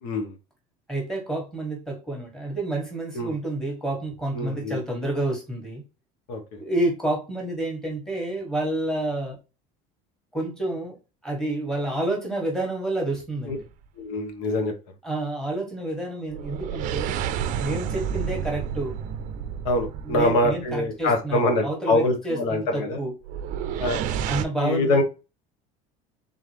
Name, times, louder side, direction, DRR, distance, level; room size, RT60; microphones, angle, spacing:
voice 1, 0.0-0.3 3.1-3.3 4.3-4.8 6.3-6.4 13.5-13.6 14.0-14.7 19.6-23.0 23.8-24.1 24.6-25.0, left 2 dB, 75° left, 4 dB, 1.2 m, -24 dB
voice 2, 0.9-5.8 6.6-9.4 10.3-11.0 11.2-13.7 15.0-17.2 17.6-18.9 20.0-23.1 24.3-25.0, right 2 dB, 5° left, -1 dB, 1.4 m, -29 dB
sound 1, 13.5-13.8 16.3-20.9 23.2-24.4, right 8 dB, 50° right, 0.5 m, -30 dB
3.7 x 3.7 x 3.2 m, 0.30 s
cardioid pair, 160°, 17 cm